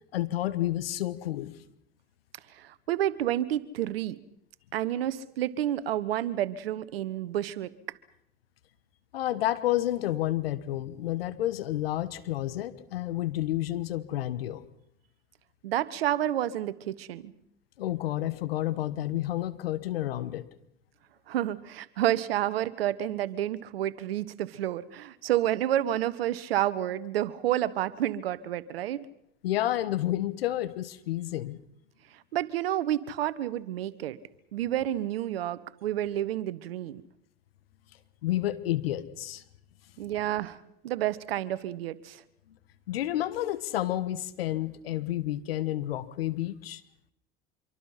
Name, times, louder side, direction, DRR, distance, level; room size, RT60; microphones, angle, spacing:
voice 1, 0.1-1.5 9.1-14.6 17.8-20.5 29.4-31.6 38.2-39.4 42.9-46.8, left 14 dB, 85° left, 13 dB, 1.5 m, -30 dB
voice 2, 2.5-4.2 4.7-7.7 15.6-17.3 21.3-29.0 32.3-34.2 34.5-37.0 40.0-40.6 40.8-42.2, right 12 dB, 85° right, 16 dB, 1.3 m, -30 dB
26.0 x 24.0 x 5.8 m, 0.76 s
hypercardioid pair, 70°, 29 cm